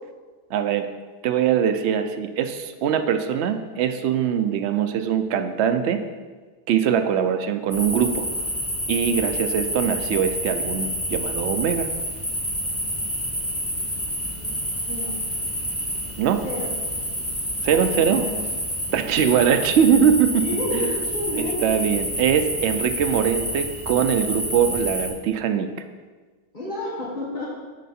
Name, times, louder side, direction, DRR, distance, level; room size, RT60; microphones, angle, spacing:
voice 1, 0.5-0.9 1.2-6.0 6.7-8.3 8.9-11.9 16.2-16.4 17.6-18.2 18.9-20.4 20.7-20.8 21.4-25.7, right 8 dB, 80° right, 8 dB, 0.8 m, -22 dB
sound 1, 7.7-25.1, equal, 10° left, 1.8 m, -28 dB
voice 2, 20.3-21.6 26.5-27.6, left 1 dB, 45° left, -6 dB, 1.8 m, -30 dB
9.2 x 4.6 x 4.2 m, 1.4 s
omnidirectional pair, 1.1 m